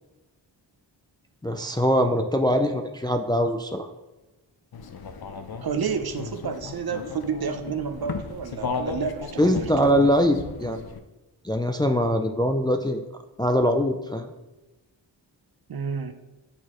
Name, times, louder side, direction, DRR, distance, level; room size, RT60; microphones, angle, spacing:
voice 1, 1.4-3.9 9.4-10.8 11.4-13.0 13.4-14.3, equal, 10° left, 5 dB, 0.4 m, -22 dB
sound 1, 4.7-11.0, left 5 dB, 50° left, 0.6 m, -35 dB
voice 2, 5.6-10.1 15.7-16.1, right 6 dB, 50° right, 7 dB, 0.7 m, -30 dB
9.3 x 4.2 x 3.0 m, 1.1 s
wide cardioid pair, 75°, 46 cm